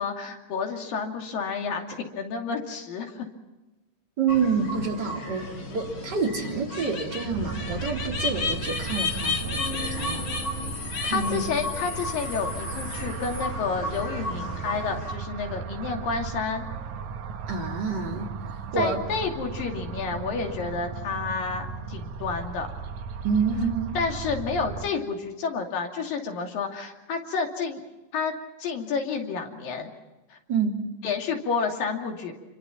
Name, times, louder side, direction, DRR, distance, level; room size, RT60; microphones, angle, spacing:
voice 1, 0.0-3.3 9.6-10.7 11.1-16.7 18.8-22.7 24.0-27.8 28.1-28.3 28.6-29.9 30.3-30.4 31.0-32.3, left 5 dB, 90° left, 3 dB, 4.4 m, -30 dB
voice 2, 4.2-10.3 11.0-11.6 17.5-18.3 18.7-19.0 23.2-24.0 30.5-30.8, right 5 dB, 30° right, 0 dB, 3.8 m, -28 dB
sound 1, 4.3-15.1, left 3 dB, 40° left, 2.9 m, -33 dB
sound 2, 7.3-24.9, right 6 dB, 65° right, 2.6 m, -36 dB
27.5 x 25.5 x 5.9 m, 1.1 s
omnidirectional pair, 3.9 m